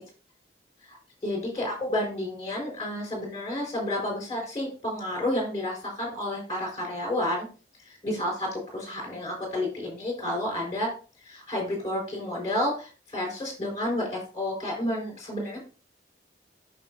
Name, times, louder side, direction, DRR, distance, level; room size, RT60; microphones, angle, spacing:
voice 1, 1.2-7.5 8.0-10.9 11.3-15.6, left 1 dB, 20° left, -1 dB, 4.1 m, -30 dB
8.6 x 6.4 x 2.5 m, 0.36 s
head